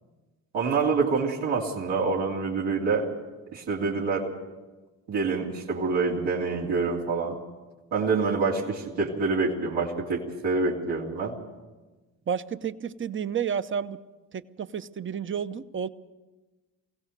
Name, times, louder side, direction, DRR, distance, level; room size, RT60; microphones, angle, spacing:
voice 1, 0.5-3.1 3.5-4.3 5.1-7.4 7.9-11.3, right 4 dB, 85° right, -6 dB, 3.2 m, -26 dB
voice 2, 12.3-14.0 14.3-15.9, right 7 dB, 30° right, 14 dB, 0.8 m, -31 dB
23.5 x 16.5 x 6.7 m, 1.2 s
supercardioid pair, 65°, 39 cm